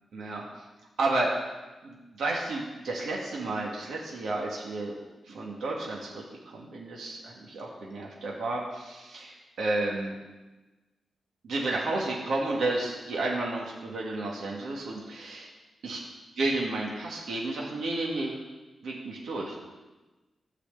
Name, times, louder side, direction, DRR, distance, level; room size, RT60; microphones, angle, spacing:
voice 1, 0.1-0.4 1.0-1.3 1.8-5.0 5.3-10.1 11.4-15.5 15.8-16.0 16.4-18.4 18.8-19.6, right 2 dB, 85° right, -2 dB, 1.9 m, -32 dB
12.5 x 4.9 x 8.0 m, 1.2 s
wide cardioid pair, 160°, 0 cm